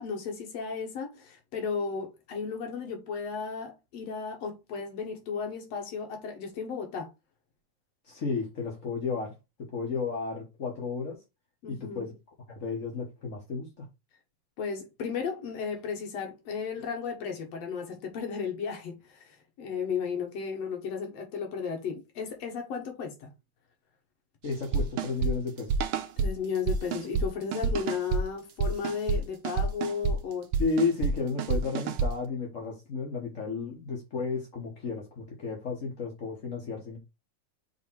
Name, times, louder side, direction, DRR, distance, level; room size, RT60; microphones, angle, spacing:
voice 1, 0.0-7.1 11.6-12.1 14.6-23.3 26.2-30.5, left 6 dB, 65° left, 2.4 m, -34 dB
voice 2, 8.1-9.3 9.7-11.2 11.7-12.1 12.5-13.9 24.4-25.8 30.6-37.0, left 4 dB, 45° left, 1.1 m, -32 dB
sound 1, 24.7-26.3 26.7-27.3 27.5-28.2 28.6-29.2 29.4-30.2 30.5-31.1 31.4-32.1, right 5 dB, 70° right, 1.4 m, -27 dB
5.7 x 3.9 x 4.6 m
omnidirectional pair, 3.3 m